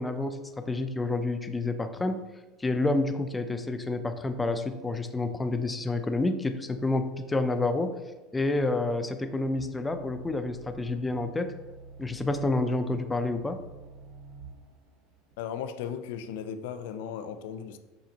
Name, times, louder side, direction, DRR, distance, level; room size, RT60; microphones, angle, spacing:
voice 1, 0.0-2.2 2.6-7.9 8.3-11.5 12.0-13.6, left 2 dB, 15° left, 0.6 m, -29 dB
sound 1, 9.6-14.7 15.3-15.4, right 3 dB, 60° right, 0.9 m, -47 dB
voice 2, 15.4-17.8, left 8 dB, 75° left, 0.5 m, -36 dB
7.1 x 5.7 x 2.9 m
hypercardioid pair, 95°, 0 cm